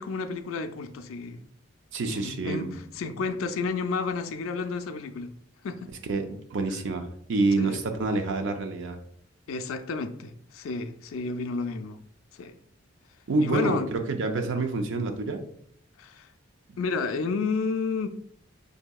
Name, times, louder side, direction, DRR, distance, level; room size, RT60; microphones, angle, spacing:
voice 1, 0.0-1.4 2.1-5.3 5.6-5.9 7.6-7.8 9.5-12.0 12.3-12.6 13.4-13.9 16.0-16.3 16.8-18.1, left 4 dB, 80° left, 0.4 m, -31 dB
voice 2, 1.9-2.7 6.1-9.0 13.3-15.4, right 3 dB, 65° right, 0.5 m, -27 dB
6.3 x 2.7 x 2.3 m
head